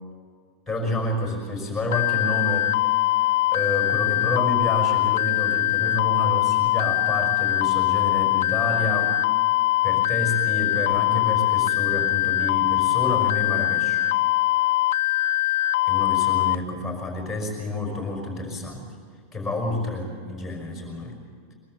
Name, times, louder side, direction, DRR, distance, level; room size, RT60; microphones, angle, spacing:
voice 1, 0.7-2.9 3.5-9.2 9.8-14.0 15.8-18.9 19.3-21.2, left 2 dB, ahead, -1 dB, 5.4 m, -29 dB
sound 1, 1.9-16.5, left 16 dB, 60° left, 0.6 m, -22 dB
23.5 x 19.0 x 7.8 m, 2.1 s
supercardioid pair, 175°, 0 cm